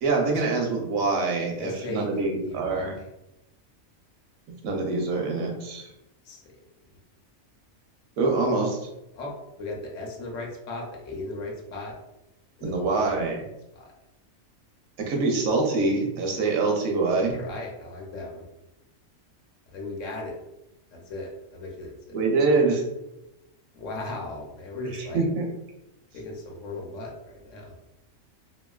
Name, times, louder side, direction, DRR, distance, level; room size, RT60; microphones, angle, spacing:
voice 1, 0.0-2.9 4.6-5.9 8.2-8.8 12.6-13.4 15.1-17.4 22.1-22.8 24.9-25.5, right 3 dB, 80° right, 1 dB, 1.1 m, -25 dB
voice 2, 1.6-3.1 6.2-6.5 9.1-11.9 12.6-13.2 13.7-13.9 17.3-18.5 19.7-20.4 20.9-22.2 23.7-25.3 26.1-27.7, left 2 dB, 70° left, -1 dB, 1.0 m, -37 dB
2.9 x 2.7 x 2.3 m, 0.91 s
omnidirectional pair, 1.4 m